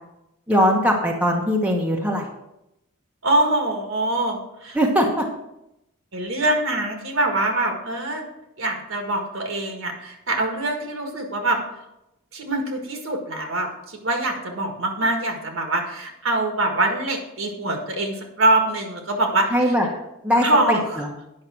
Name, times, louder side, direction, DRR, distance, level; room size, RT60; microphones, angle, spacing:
voice 1, 0.5-2.3 4.7-5.2 19.5-19.9 20.2-21.1, equal, 5° right, -1 dB, 1.1 m, -20 dB
voice 2, 3.2-4.8 6.1-8.2 8.6-11.6 12.3-19.7 20.4-21.0, right 2 dB, 65° right, 3 dB, 1.7 m, -24 dB
9.5 x 5.7 x 6.0 m, 0.86 s
head